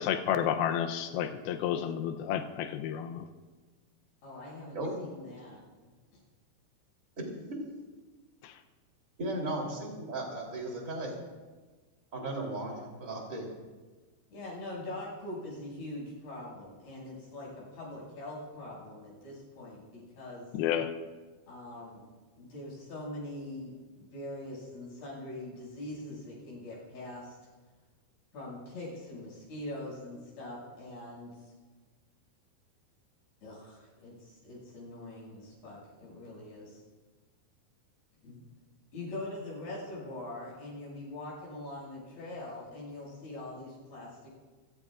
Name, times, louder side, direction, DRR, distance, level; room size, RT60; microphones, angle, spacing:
voice 1, 0.0-3.2 8.4-8.5 20.5-20.9, left 9 dB, 85° left, 6 dB, 2.2 m, -31 dB
voice 2, 4.2-5.9 14.3-20.5 21.5-22.0 22.3-27.4 28.3-31.5 33.4-36.8 38.2-38.4 38.9-44.3, left 1 dB, 60° left, -5 dB, 8.7 m, -43 dB
voice 3, 9.2-11.1 12.1-12.7 13.0-13.4, right 1 dB, 20° right, -1 dB, 3.1 m, -35 dB
28.5 x 16.0 x 2.5 m, 1.3 s
omnidirectional pair, 5.4 m